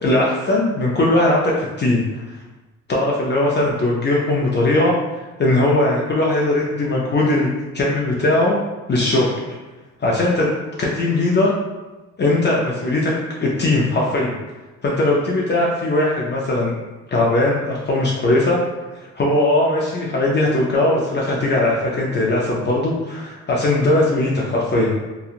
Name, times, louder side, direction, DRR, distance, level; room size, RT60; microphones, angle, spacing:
voice 1, 0.0-2.4 2.9-4.9 5.4-8.5 8.9-9.4 10.0-10.5 10.8-11.5 12.2-13.1 13.4-14.3 14.8-16.7 17.1-18.6 19.2-24.9, left 2 dB, 35° left, -3 dB, 0.5 m, -19 dB
2.9 x 2.3 x 2.4 m, 1.1 s
cardioid pair, 90°, 30 cm